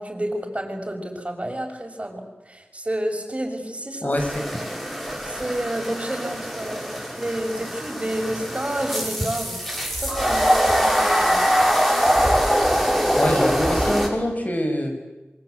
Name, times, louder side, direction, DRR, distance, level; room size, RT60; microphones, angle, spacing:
voice 1, 0.0-4.2 5.2-9.6 10.0-11.4, right 1 dB, 30° right, 3 dB, 6.4 m, -30 dB
voice 2, 4.0-4.4 13.1-15.0, left 1 dB, 45° left, 4 dB, 6.5 m, -24 dB
sound 1, 4.2-14.1, equal, 5° left, 6.2 m, -23 dB
27.5 x 24.0 x 8.4 m, 1.1 s
wide cardioid pair, 50°, 4 cm